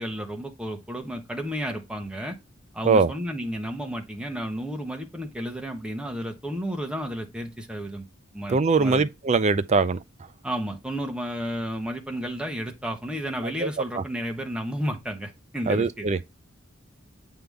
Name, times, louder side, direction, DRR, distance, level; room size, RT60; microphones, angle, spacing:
voice 1, 0.0-2.4 2.7-8.0 8.3-9.0 10.4-16.1, equal, 5° right, 1.1 m, -32 dB
voice 2, 8.5-10.0 13.6-13.7 14.0-14.1 15.7-16.2, right 4 dB, 35° right, 0.4 m, -21 dB
7.9 x 3.7 x 3.5 m
head